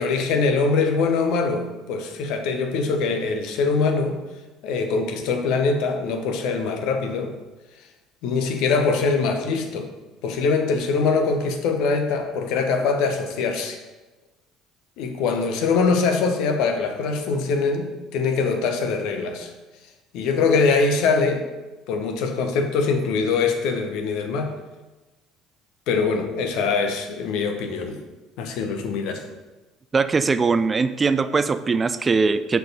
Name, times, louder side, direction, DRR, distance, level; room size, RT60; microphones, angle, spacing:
voice 1, 0.0-4.2 4.6-7.3 8.2-9.9 10.2-13.8 15.0-19.5 20.1-21.4 21.9-24.5 25.9-28.0 28.4-29.2, left 4 dB, 60° left, 5 dB, 0.9 m, -23 dB
voice 2, 29.9-32.6, right 4 dB, 25° right, 12 dB, 0.4 m, -21 dB
6.5 x 4.7 x 5.3 m, 1.1 s
figure-of-eight pair, 60°, 0 cm